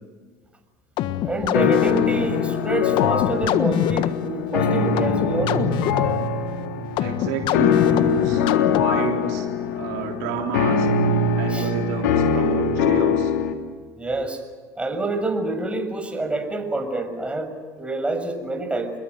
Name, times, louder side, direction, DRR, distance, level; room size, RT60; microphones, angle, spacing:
sound 1, 1.0-9.2, left 11 dB, 60° left, 1.4 m, -26 dB
voice 1, 1.2-5.7 11.5-11.7 14.0-14.4 14.8-18.9, right 2 dB, 15° right, 6 dB, 6.7 m, -27 dB
sound 2, 1.5-13.5, left 6 dB, 85° left, 2.9 m, -22 dB
voice 2, 7.0-8.5 8.8-10.9 11.3-13.3, right 8 dB, 80° right, 2 dB, 3.6 m, -30 dB
28.0 x 21.5 x 7.9 m, 1.5 s
hypercardioid pair, 80°, 9 cm